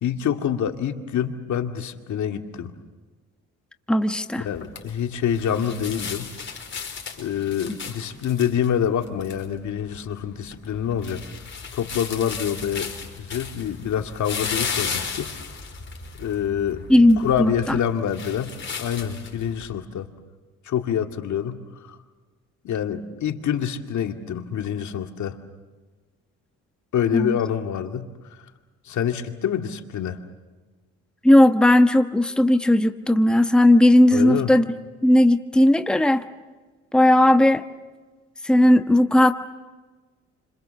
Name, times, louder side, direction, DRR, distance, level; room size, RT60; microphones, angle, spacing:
voice 1, 0.0-2.7 4.4-6.3 7.2-11.3 11.7-12.9 13.2-15.3 16.2-16.8 17.2-20.1 20.7-22.0 22.6-25.4 26.9-28.1 28.9-30.2 34.1-34.5, left 9 dB, 70° left, 5 dB, 2.2 m, -26 dB
voice 2, 3.9-4.5 7.7-7.8 16.9-17.5 27.1-27.4 31.2-34.7 35.0-36.2 36.9-37.6 38.4-39.3, left 1 dB, 5° left, 8 dB, 1.2 m, -16 dB
sound 1, 4.5-19.6, left 5 dB, 40° left, 5.1 m, -35 dB
29.5 x 26.5 x 7.1 m, 1.3 s
cardioid pair, 90°, 30 cm